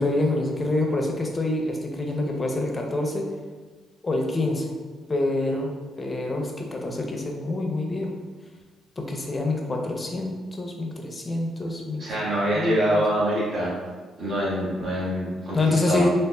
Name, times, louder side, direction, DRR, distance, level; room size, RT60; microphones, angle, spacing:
voice 1, 0.0-3.3 4.0-4.7 5.1-8.1 9.0-12.1 12.5-13.0 15.5-16.1, left 2 dB, 25° left, 1 dB, 0.6 m, -26 dB
voice 2, 12.0-13.8 14.2-16.1, equal, 50° right, -7 dB, 1.4 m, -25 dB
3.9 x 3.0 x 2.2 m, 1.4 s
cardioid pair, 90°, 0 cm